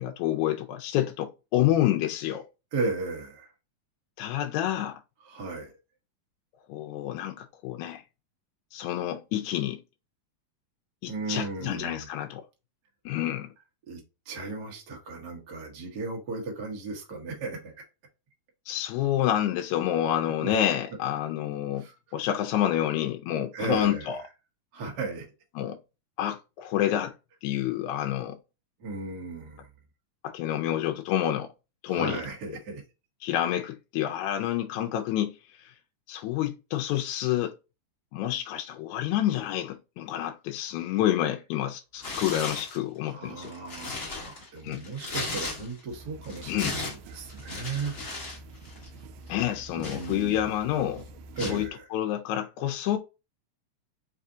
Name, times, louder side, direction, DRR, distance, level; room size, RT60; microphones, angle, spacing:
voice 1, 0.0-2.4 4.2-5.0 6.7-8.0 8.7-9.8 11.0-12.4 13.1-13.5 18.7-21.9 22.1-24.2 25.6-25.8 26.2-27.1 27.4-28.4 30.2-31.5 31.8-32.2 33.2-35.3 35.6-35.7 36.1-37.5 38.1-43.5 44.6-44.8 46.4-46.8 49.3-51.0 51.5-53.0, left 12 dB, 80° left, 1.8 m, -28 dB
voice 2, 2.7-3.5 5.2-5.7 11.0-12.1 13.9-14.0 14.3-17.7 20.4-20.6 21.8-21.9 23.5-24.1 24.7-25.3 28.8-29.6 31.9-32.8 43.1-43.9 44.2-48.0 49.7-50.5 51.4-51.9, right 3 dB, 60° right, 1.0 m, -35 dB
Tearing, 42.0-42.8 43.3-45.9 46.2-48.4 48.6-48.9 49.4-50.6 51.4-51.6, left 3 dB, 50° left, 0.9 m, -36 dB
sound 1, 45.9-51.7, right 3 dB, 80° right, 1.8 m, -47 dB
4.8 x 2.6 x 3.5 m
omnidirectional pair, 3.7 m